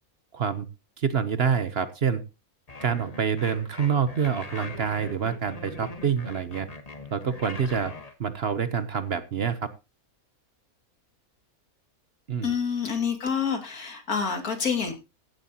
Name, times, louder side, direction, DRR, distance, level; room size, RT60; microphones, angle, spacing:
voice 1, 0.3-0.7 1.0-2.2 2.8-6.7 7.1-7.9 8.2-9.7 12.3-12.5, right 7 dB, 50° right, 12 dB, 1.0 m, -27 dB
sound 1, 2.7-8.1, left 3 dB, 25° left, 1.4 m, -41 dB
voice 2, 12.4-14.9, left 6 dB, 85° left, 5 dB, 2.9 m, -27 dB
16.0 x 11.0 x 2.9 m, 0.28 s
omnidirectional pair, 1.5 m